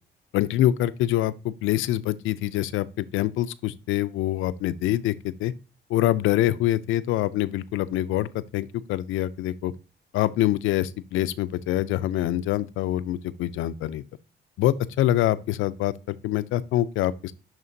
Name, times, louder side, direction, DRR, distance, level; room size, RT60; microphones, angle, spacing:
voice 1, 0.3-5.5 5.9-9.7 10.1-14.0 14.6-17.3, left 14 dB, 85° left, 0.4 m, -25 dB
11.0 x 3.7 x 2.6 m
cardioid pair, 90°, 20 cm